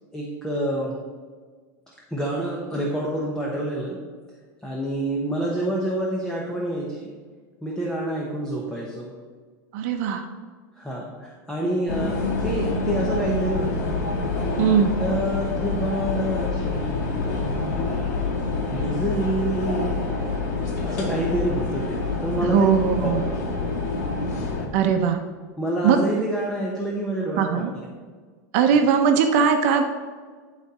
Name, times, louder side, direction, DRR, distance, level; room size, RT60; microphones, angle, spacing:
voice 1, 0.1-1.0 1.9-4.0 4.6-7.1 7.6-9.1 10.8-13.9 14.5-14.7 15.0-20.1 20.8-22.8 25.6-27.6, right 1 dB, 5° left, -3 dB, 1.1 m, -28 dB
voice 2, 9.7-10.3 14.6-14.9 22.4-23.3 24.7-25.2 25.8-26.0 27.4-27.7 28.5-29.8, right 7 dB, 60° right, 6 dB, 0.8 m, -20 dB
sound 1, 11.9-24.7, left 3 dB, 80° left, 2.2 m, -27 dB
12.5 x 4.1 x 4.2 m, 1.5 s
supercardioid pair, 150°, 9 cm